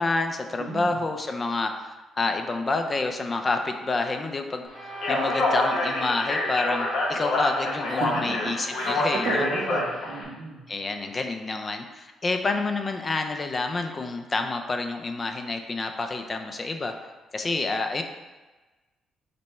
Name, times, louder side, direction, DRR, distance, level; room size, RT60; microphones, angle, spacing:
voice 1, 0.0-1.9 2.2-9.5 10.7-16.9 17.3-18.0, left 3 dB, 30° left, 5 dB, 0.4 m, -28 dB
voice 2, 0.6-0.9 8.0-8.4 8.6-9.0 9.2-10.6, right 3 dB, 70° right, 1 dB, 0.7 m, -33 dB
Wind instrument woodwind instrument, 4.7-9.4, right 3 dB, 30° right, 0.7 m, -38 dB
Speech, 4.9-10.2, left 2 dB, 65° left, 1.0 m, -27 dB
5.2 x 2.2 x 4.1 m, 1.2 s
cardioid pair, 90°, 0 cm